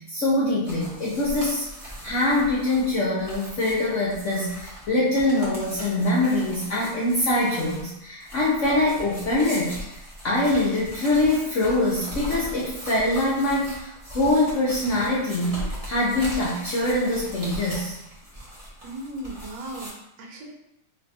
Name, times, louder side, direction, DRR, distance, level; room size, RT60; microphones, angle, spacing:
voice 1, 0.1-1.6 2.0-9.7 10.2-18.0, left 2 dB, 65° left, -6 dB, 0.7 m, -24 dB
sound 1, 0.7-19.9, equal, 30° right, 0.6 m, -39 dB
voice 2, 18.8-20.5, right 1 dB, 80° right, 0 dB, 1.4 m, -37 dB
3.2 x 2.2 x 4.0 m, 0.85 s
omnidirectional pair, 1.9 m